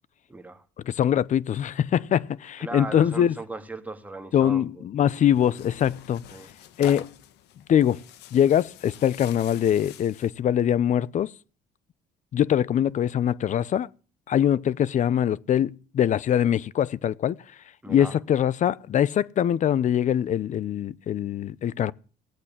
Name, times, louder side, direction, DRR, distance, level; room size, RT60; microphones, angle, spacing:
voice 1, 0.3-0.6 2.6-4.8 6.3-6.5 17.8-18.2, right 2 dB, 10° right, 2.0 m, -37 dB
voice 2, 0.8-3.4 4.3-6.2 6.8-7.1 7.7-8.0 8.3-11.3 12.3-13.9 14.3-17.4 17.9-21.9, left 10 dB, 45° left, 0.6 m, -23 dB
Tearing, 5.1-10.4, left 11 dB, 85° left, 1.4 m, -45 dB
18.0 x 8.4 x 7.3 m
cardioid pair, 110°, 17 cm